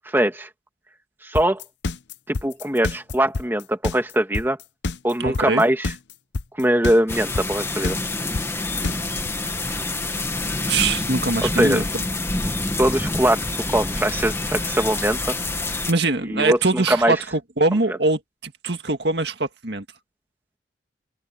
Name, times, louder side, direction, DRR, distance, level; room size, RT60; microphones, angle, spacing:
voice 1, 0.1-0.5 1.2-1.6 2.3-4.6 5.0-5.9 6.6-8.0 11.4-11.8 12.8-13.4 13.7-15.2 16.3-17.1 17.7-17.8, right 1 dB, 10° right, 1.8 m, -21 dB
sound 1, 1.3-9.3, left 3 dB, 70° left, 0.8 m, -27 dB
voice 2, 5.2-5.6 10.6-11.9 15.9-19.8, right 3 dB, 65° right, 1.9 m, -23 dB
sound 2, 7.1-15.9, left 2 dB, 15° left, 1.5 m, -27 dB
head